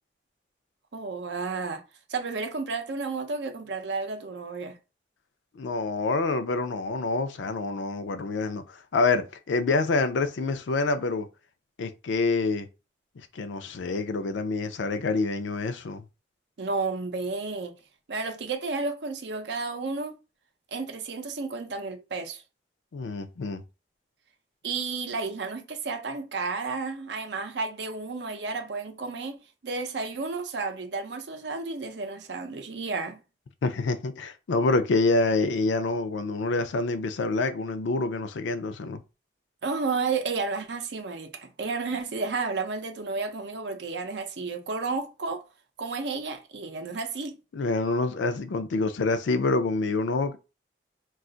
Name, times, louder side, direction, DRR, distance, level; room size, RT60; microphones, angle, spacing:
voice 1, 0.9-1.8 2.1-4.8 16.6-17.7 18.1-20.2 20.7-22.4 24.6-29.4 29.6-33.2 39.6-45.4 45.8-47.4, right 4 dB, 75° right, 0.6 m, -32 dB
voice 2, 5.5-11.3 11.8-12.7 13.2-16.0 22.9-23.6 33.6-39.0 47.5-50.4, left 3 dB, 85° left, 0.4 m, -27 dB
2.4 x 2.4 x 3.8 m
head